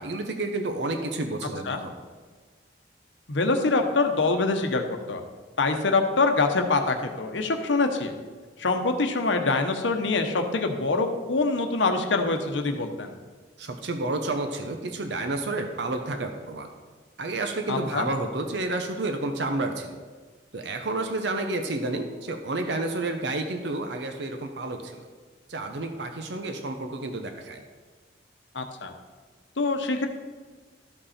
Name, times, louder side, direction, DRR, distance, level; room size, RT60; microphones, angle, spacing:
voice 1, 0.0-1.9 13.6-16.7 17.2-20.0 20.5-25.1 25.5-27.6, right 2 dB, 70° right, 5 dB, 0.8 m, -30 dB
voice 2, 3.3-5.2 5.6-8.2 8.6-13.1 17.7-18.1 28.5-28.9 29.6-30.1, left 3 dB, 85° left, 5 dB, 0.9 m, -25 dB
12.5 x 5.4 x 4.3 m, 1.4 s
head